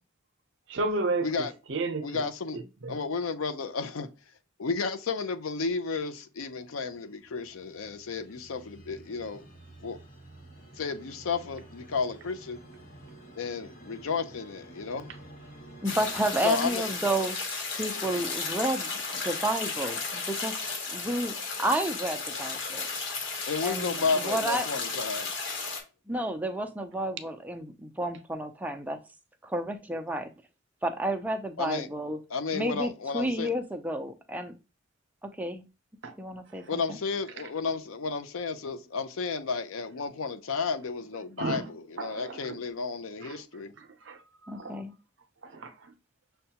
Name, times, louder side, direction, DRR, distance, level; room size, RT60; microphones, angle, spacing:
voice 1, 0.7-1.3 1.7-2.2 2.5-2.9 36.0-36.1 41.4-41.6 42.0-42.6 43.2-43.4 44.1-44.2 44.4-44.8 45.4-45.9, right 3 dB, 60° right, 0.6 m, -32 dB
voice 2, 1.2-1.5 2.0-2.6 2.9-4.1 4.6-9.5 9.8-10.0 10.8-12.6 13.4-15.1 16.4-16.9 17.9-18.2 23.5-25.3 31.6-31.9 32.3-33.5 36.7-43.7, left 4 dB, 85° left, 0.5 m, -32 dB
sound 1, 6.8-16.4, right 1 dB, 45° left, 1.1 m, -50 dB
sound 2, 15.8-25.8, left 4 dB, 65° left, 1.1 m, -34 dB
voice 3, 15.8-20.6 20.9-21.3 21.6-22.9 23.6-24.7 26.1-29.0 29.4-30.3 30.8-32.2 32.5-34.5 35.2-35.6 36.2-37.0 44.5-44.9, right 1 dB, 10° right, 0.4 m, -31 dB
6.5 x 2.2 x 2.8 m
head